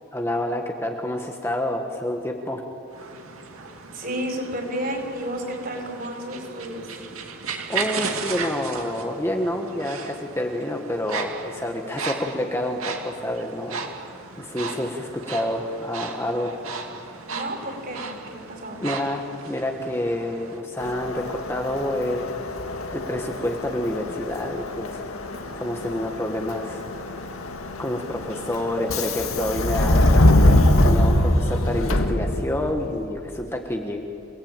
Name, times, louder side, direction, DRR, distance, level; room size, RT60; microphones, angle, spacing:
voice 1, 0.1-2.6 7.7-13.9 14.4-16.5 18.8-22.5 22.9-25.0 25.3-26.8 27.8-34.0, left 1 dB, 10° left, 2 dB, 1.3 m, -28 dB
sound 1, 2.9-20.6, right 5 dB, 85° right, 2.5 m, -36 dB
voice 2, 3.9-7.0 17.3-18.8, equal, 45° right, 3 dB, 5.1 m, -32 dB
Subway metro underground, 20.8-32.7, left 1 dB, 85° left, 2.0 m, -23 dB
27.5 x 18.5 x 9.0 m, 2.6 s
head